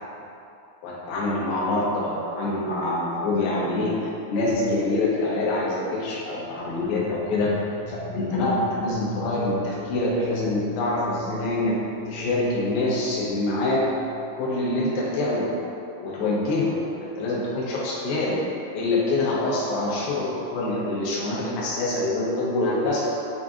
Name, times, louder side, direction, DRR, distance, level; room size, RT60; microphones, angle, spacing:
voice 1, 0.8-7.5 7.9-11.7 12.1-13.8 14.4-15.5 16.0-16.9 17.2-18.4 18.7-23.0, left 2 dB, 80° left, -6 dB, 2.5 m, -25 dB
sound 1, 6.6-14.4, left 3 dB, 80° right, 2.5 m, -41 dB
7.0 x 2.6 x 2.4 m, 2.7 s
omnidirectional pair, 4.5 m